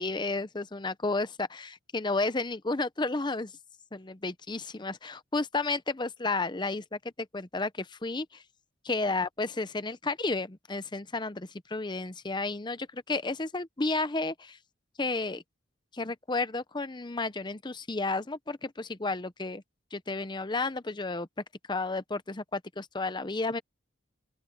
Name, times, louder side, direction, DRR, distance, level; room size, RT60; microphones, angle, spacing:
voice 1, 0.0-3.5 3.9-8.4 8.8-14.6 15.0-15.4 15.9-19.6 19.9-21.3 21.7-23.6, left 3 dB, 20° left, 0.7 m, -32 dB
open air
head